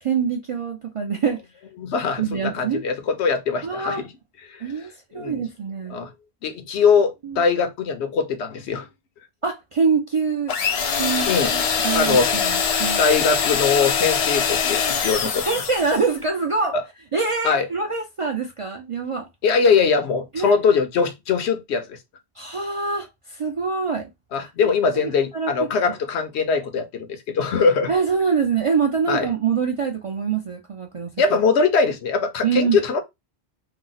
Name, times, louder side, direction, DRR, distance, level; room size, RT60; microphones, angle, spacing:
voice 1, 0.0-1.4 2.2-2.8 3.6-4.0 4.6-6.0 7.2-7.4 9.4-10.5 11.0-13.0 14.6-14.7 15.4-16.7 17.1-19.3 20.3-20.6 22.4-24.1 24.4-24.7 25.3-25.5 27.9-31.1 32.4-32.8, right 5 dB, 50° right, 0.4 m, -25 dB
voice 2, 1.8-4.0 4.4-4.8 5.1-5.4 5.9-6.1 6.4-8.9 11.3-11.5 11.9-12.4 13.0-15.5 16.7-16.8 17.4-17.7 19.4-22.0 24.3-27.9 29.1-29.3 31.2-33.0, left 5 dB, 80° left, 0.9 m, -21 dB
sound 1, 10.5-16.1, left 6 dB, 55° left, 0.4 m, -23 dB
2.8 x 2.0 x 3.8 m
omnidirectional pair, 1.1 m